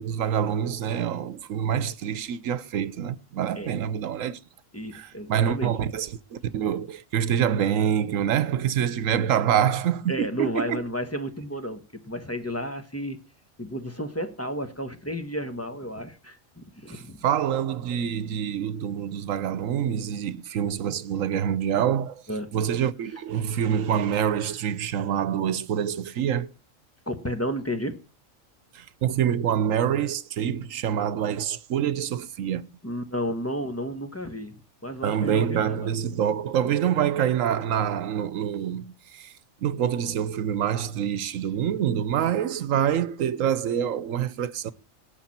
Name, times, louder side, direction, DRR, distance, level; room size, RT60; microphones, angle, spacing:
voice 1, 0.0-4.4 4.9-10.8 16.9-22.2 22.5-26.5 28.7-32.7 35.0-39.3 39.6-44.7, right 9 dB, 80° right, 1.2 m, -26 dB
voice 2, 4.7-5.8 10.1-13.2 13.6-17.2 22.3-22.5 27.1-28.0 32.8-35.9, equal, 10° left, 1.3 m, -32 dB
18.5 x 6.6 x 4.3 m
omnidirectional pair, 1.4 m